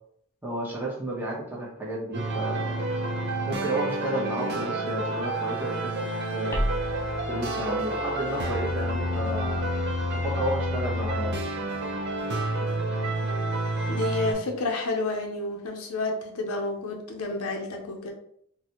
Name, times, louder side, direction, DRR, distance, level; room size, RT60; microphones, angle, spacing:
voice 1, 0.4-2.8 3.5-5.9 6.3-6.6 7.3-9.7 10.2-11.4, right 1 dB, 10° right, -5 dB, 0.9 m, -32 dB
sound 1, 2.1-14.3, right 1 dB, 45° right, 0.6 m, -29 dB
sound 2, 6.5-11.4, equal, 10° left, 0.5 m, -37 dB
voice 2, 13.9-18.1, left 2 dB, 80° left, 2 dB, 0.6 m, -30 dB
4.0 x 2.2 x 2.9 m, 0.67 s
head